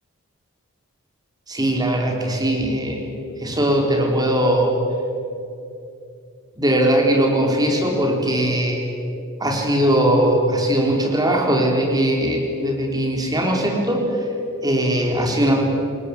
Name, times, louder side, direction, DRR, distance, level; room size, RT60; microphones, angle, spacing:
voice 1, 1.5-3.0 3.4-4.7 6.6-8.8 9.4-14.2 14.6-15.6, right 1 dB, 15° right, 1 dB, 3.9 m, -20 dB
26.5 x 20.5 x 8.5 m, 2.7 s
head